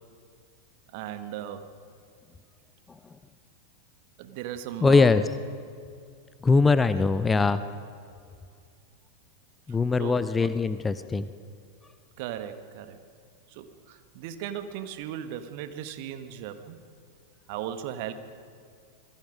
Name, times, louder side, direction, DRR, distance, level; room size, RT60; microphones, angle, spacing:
voice 1, 0.9-1.7 4.2-5.1 10.0-10.5 12.2-13.0 13.5-16.8 17.5-18.1, right 10 dB, 45° right, 9 dB, 1.5 m, -37 dB
voice 2, 4.8-5.2 6.4-7.6 9.7-11.3, left 4 dB, 15° left, 13 dB, 0.7 m, -21 dB
27.0 x 21.0 x 5.2 m, 2.3 s
figure-of-eight pair, 90°, 0 cm